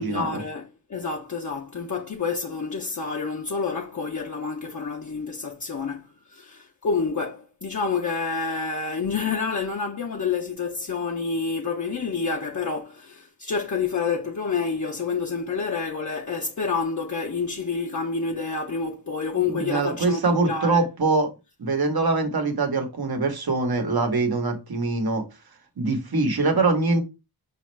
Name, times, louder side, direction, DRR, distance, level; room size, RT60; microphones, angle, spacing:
voice 1, 0.0-20.8, left 5 dB, 50° left, 0.6 m, -28 dB
voice 2, 19.5-21.3 21.6-25.2 25.8-27.0, right 3 dB, 75° right, 1.0 m, -23 dB
5.0 x 2.4 x 3.1 m
wide cardioid pair, 70°, 37 cm